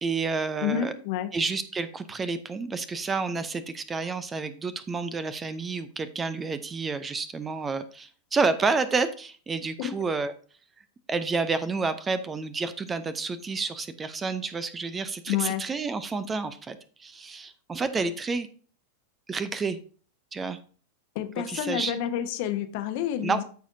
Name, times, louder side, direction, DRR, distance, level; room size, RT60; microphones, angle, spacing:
voice 1, 0.0-0.9 1.3-10.3 11.1-18.5 19.3-19.8 20.3-20.6 21.5-21.9 23.2-23.4, right 4 dB, 15° right, 14 dB, 0.6 m, -29 dB
voice 2, 0.6-1.3 9.8-9.9 15.3-15.6 21.1-23.4, left 10 dB, 50° left, 8 dB, 1.0 m, -29 dB
14.0 x 4.9 x 2.7 m, 0.42 s
figure-of-eight pair, 90°, 0 cm